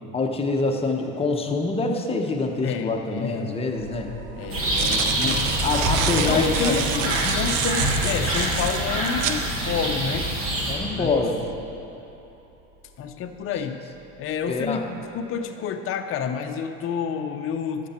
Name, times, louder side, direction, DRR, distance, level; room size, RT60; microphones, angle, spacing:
voice 1, 0.1-4.2 5.1-6.8 10.7-11.4 14.5-14.8, left 3 dB, 15° left, 2 dB, 0.9 m, -25 dB
voice 2, 2.6-3.5 4.4-5.7 6.2-10.4 10.7-11.2 13.0-13.8 14.2-17.9, left 7 dB, 40° left, 6 dB, 0.6 m, -29 dB
sound 1, 3.4-3.5 4.4-9.4, right 9 dB, 70° right, 0.7 m, -29 dB
sound 2, 3.7-14.8, right 1 dB, 55° right, 1.3 m, -38 dB
sound 3, 4.5-10.7, right 1 dB, 40° right, 1.9 m, -26 dB
11.5 x 6.8 x 4.3 m, 2.9 s
supercardioid pair, 100°, 35 cm